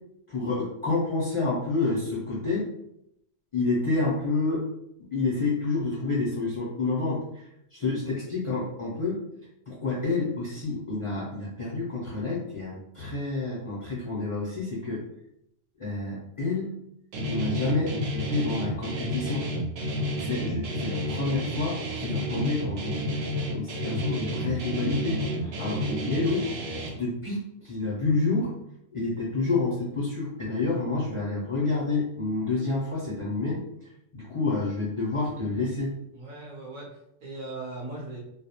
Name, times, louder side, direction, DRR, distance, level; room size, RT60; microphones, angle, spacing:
voice 1, 0.3-2.7 3.5-4.7 5.1-7.2 7.7-9.2 9.7-15.0 15.8-16.7 17.3-19.4 20.2-23.0 23.5-25.2 25.6-26.5 26.9-28.5 28.9-33.6 34.1-35.9, left 3 dB, 40° left, -6 dB, 0.4 m, -28 dB
Guitar, 17.1-26.9, equal, 75° right, 0.9 m, -30 dB
voice 2, 36.1-38.2, right 2 dB, 55° right, -2 dB, 0.7 m, -39 dB
2.3 x 2.0 x 2.8 m, 0.79 s
omnidirectional pair, 1.2 m